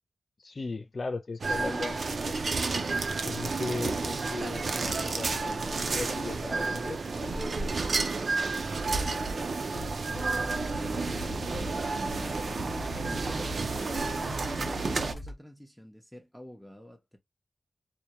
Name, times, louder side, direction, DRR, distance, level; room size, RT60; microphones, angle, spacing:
voice 1, 0.4-2.4 3.2-7.6, left 3 dB, 55° left, 0.3 m, -37 dB
sound 1, 1.4-15.1, right 3 dB, 70° right, 0.4 m, -31 dB
sound 2, 9.7-15.4, left 1 dB, 75° left, 0.9 m, -41 dB
voice 2, 10.6-17.2, equal, ahead, 0.6 m, -48 dB
2.2 x 2.1 x 2.8 m
cardioid pair, 50°, 0 cm